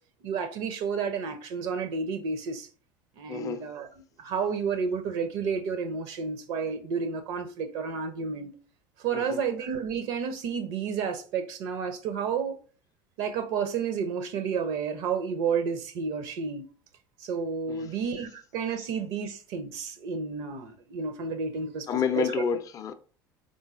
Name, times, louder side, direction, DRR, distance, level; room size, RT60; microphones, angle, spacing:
voice 1, 0.2-2.7 3.2-3.9 4.2-8.5 9.0-12.6 13.2-16.7 17.2-21.9 22.2-22.4, right 6 dB, 55° right, 0.5 m, -31 dB
voice 2, 3.3-3.7 9.1-9.4 17.7-17.9 21.9-22.9, left 7 dB, 30° left, 0.4 m, -29 dB
3.8 x 3.7 x 2.4 m
figure-of-eight pair, 65°, 11 cm